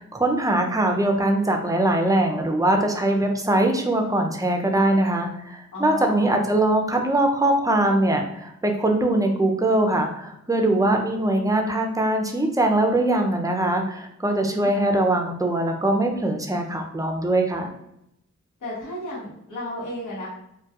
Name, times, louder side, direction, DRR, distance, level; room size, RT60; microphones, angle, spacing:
voice 1, 0.0-17.7, right 1 dB, 10° right, 3 dB, 0.5 m, -22 dB
voice 2, 5.7-6.4 14.3-14.7 18.6-20.3, left 1 dB, 85° left, -9 dB, 1.1 m, -34 dB
2.2 x 2.2 x 2.8 m, 0.78 s
cardioid pair, 45°, 31 cm